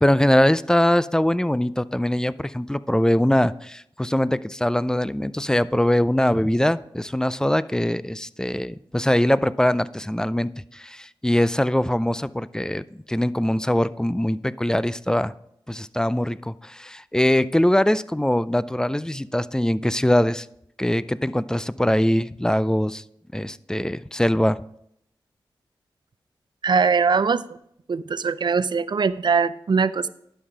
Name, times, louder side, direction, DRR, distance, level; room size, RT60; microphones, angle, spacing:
voice 1, 0.0-15.3 15.7-20.5 20.8-23.0 23.3-24.6, left 1 dB, 5° left, 17 dB, 0.4 m, -22 dB
voice 2, 26.6-27.4 27.9-30.1, right 5 dB, 55° right, 15 dB, 0.5 m, -21 dB
11.5 x 5.5 x 4.9 m, 0.74 s
cardioid pair, 45°, 9 cm